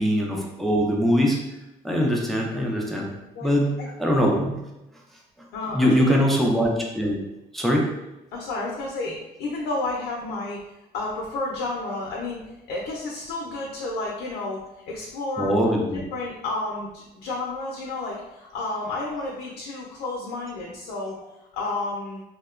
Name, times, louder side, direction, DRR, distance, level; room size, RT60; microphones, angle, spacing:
voice 1, 0.0-1.4 1.8-3.1 3.4-4.6 5.4-5.5 5.7-7.2 7.5-7.9 15.4-16.0, equal, ahead, -1 dB, 0.4 m, -22 dB
voice 2, 5.5-6.2 8.3-10.6 10.9-15.5 16.1-21.2 21.5-22.2, left 2 dB, 90° left, -2 dB, 0.5 m, -31 dB
2.7 x 2.1 x 2.3 m, 0.94 s
cardioid pair, 110°, 17 cm